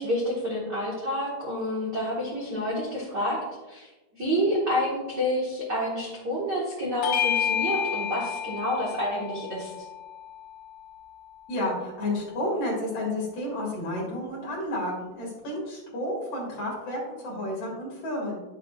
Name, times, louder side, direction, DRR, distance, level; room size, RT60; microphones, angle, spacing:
voice 1, 0.0-3.4 3.7-9.8, equal, 50° right, -5 dB, 1.2 m, -29 dB
Bell / Doorbell, 7.0-11.9, left 9 dB, 90° left, 2.4 m, -31 dB
voice 2, 11.5-18.4, left 1 dB, 45° left, -3 dB, 2.9 m, -31 dB
10.5 x 7.6 x 2.5 m, 1.1 s
omnidirectional pair, 4.2 m